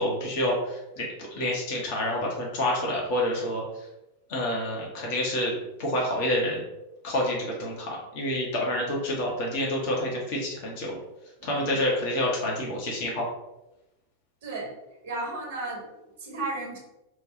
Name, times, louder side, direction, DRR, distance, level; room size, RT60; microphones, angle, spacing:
voice 1, 0.0-3.6 4.3-6.6 7.0-11.0 11.4-13.2, left 1 dB, 50° left, -2 dB, 0.9 m, -28 dB
voice 2, 11.4-11.8 14.4-14.7 15.0-16.8, right 2 dB, 60° right, -2 dB, 1.1 m, -34 dB
3.3 x 2.3 x 3.8 m, 0.95 s
figure-of-eight pair, 90°, 0 cm